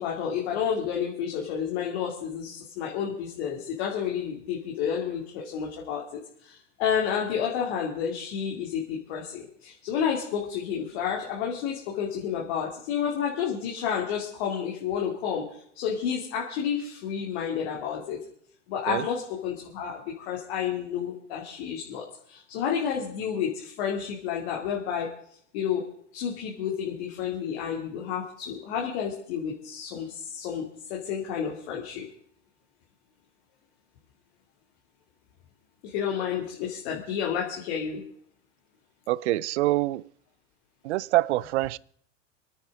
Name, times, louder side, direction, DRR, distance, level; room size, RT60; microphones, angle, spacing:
voice 1, 0.0-18.2 18.7-25.1 25.5-25.9 26.1-32.0 35.8-38.0, left 8 dB, 55° left, 2.9 m, -30 dB
voice 2, 39.1-40.1 40.8-41.8, right 17 dB, 65° right, 0.6 m, -25 dB
27.5 x 9.5 x 3.8 m
hypercardioid pair, 100°, 37 cm